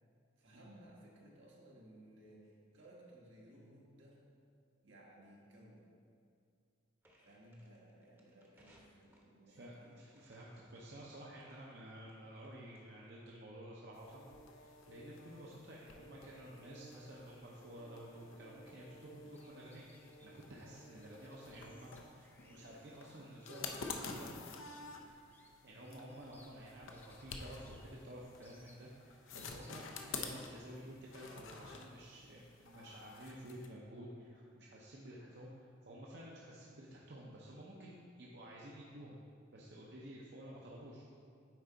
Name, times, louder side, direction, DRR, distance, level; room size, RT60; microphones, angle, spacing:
voice 1, 0.4-4.2 4.8-5.9 7.2-9.9, right 1 dB, 75° right, -3 dB, 1.5 m, -59 dB
sound 1, 7.0-13.4, equal, 10° right, 0.7 m, -70 dB
voice 2, 9.5-19.9 20.2-24.3 25.6-39.2 39.5-41.1, right 1 dB, 55° right, -4 dB, 0.7 m, -52 dB
sound 2, 13.9-33.7, left 4 dB, 85° left, 0.6 m, -50 dB
sound 3, 19.1-30.0, left 1 dB, 10° left, 0.4 m, -68 dB
9.2 x 4.6 x 3.9 m, 2.3 s
head